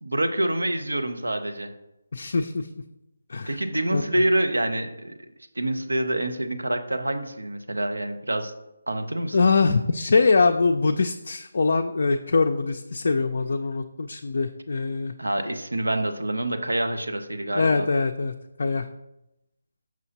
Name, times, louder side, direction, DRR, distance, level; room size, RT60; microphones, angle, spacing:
voice 1, 0.0-1.7 3.5-5.1 5.6-8.5 8.9-9.4 15.2-17.9, right 1 dB, 85° right, 7 dB, 0.6 m, -26 dB
voice 2, 2.1-2.7 3.3-3.5 3.9-4.0 9.3-15.1 17.5-18.3 18.6-18.9, left 4 dB, 60° left, 5 dB, 0.3 m, -23 dB
6.0 x 5.6 x 2.8 m, 0.90 s
figure-of-eight pair, 150°, 0 cm